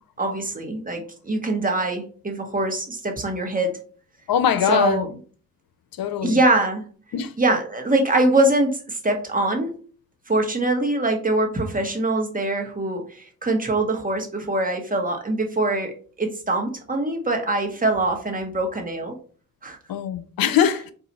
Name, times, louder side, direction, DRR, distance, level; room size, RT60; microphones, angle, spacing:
voice 1, 0.2-3.8 4.7-5.1 6.2-6.9 7.4-9.7 10.3-19.2 19.6-19.8, right 2 dB, 25° right, 0.9 m, -23 dB
voice 2, 4.3-5.1 6.0-6.4 7.1-7.3 19.9-20.9, left 9 dB, 85° left, 0.5 m, -22 dB
4.1 x 2.4 x 3.9 m
cardioid pair, 90°, 34 cm